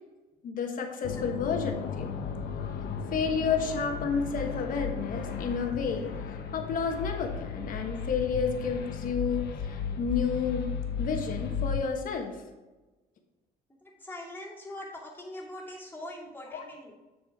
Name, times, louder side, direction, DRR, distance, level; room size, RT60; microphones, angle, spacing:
voice 1, 0.4-2.1 3.1-10.7 11.0-12.3 16.5-16.6, left 5 dB, 55° left, 4 dB, 1.3 m, -31 dB
sound 1, 1.0-11.8, left 6 dB, 70° left, 0.9 m, -35 dB
voice 2, 13.7-16.9, left 1 dB, 10° left, -5 dB, 2.2 m, -42 dB
7.8 x 6.1 x 3.6 m, 1.2 s
cardioid pair, 110°, 17 cm